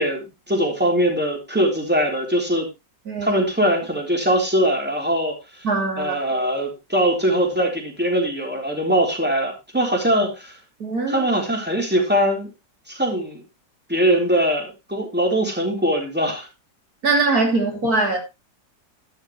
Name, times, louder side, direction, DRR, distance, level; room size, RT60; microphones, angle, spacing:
voice 1, 0.0-2.7 3.2-5.7 6.0-10.6 11.1-12.5 12.9-13.4 13.9-16.5, equal, 5° right, 3.8 m, -21 dB
voice 2, 3.1-3.4 5.6-6.1 10.8-11.3 17.0-18.2, right 3 dB, 60° right, 3.4 m, -21 dB
12.5 x 11.5 x 3.1 m
omnidirectional pair, 1.8 m